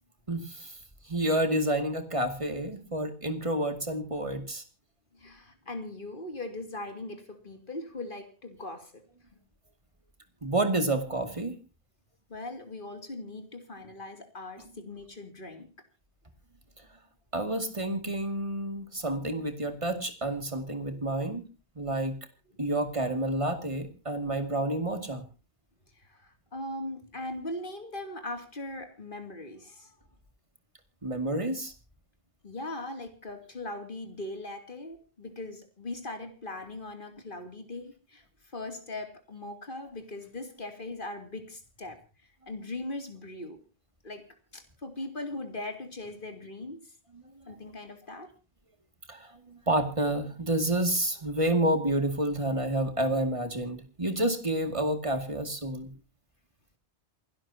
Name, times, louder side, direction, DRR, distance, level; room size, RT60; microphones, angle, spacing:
voice 1, 0.3-0.8 1.0-4.6 10.4-11.5 17.3-21.5 21.8-22.2 22.6-25.2 31.0-31.7 47.1-47.2 49.1-55.9, right 1 dB, 30° right, 7 dB, 2.4 m, -29 dB
voice 2, 5.1-9.0 12.3-15.7 25.9-29.9 32.4-43.6 44.0-44.2 44.5-46.9 47.5-48.3, left 2 dB, 50° left, 6 dB, 2.9 m, -40 dB
28.0 x 12.0 x 2.8 m, 0.32 s
omnidirectional pair, 1.1 m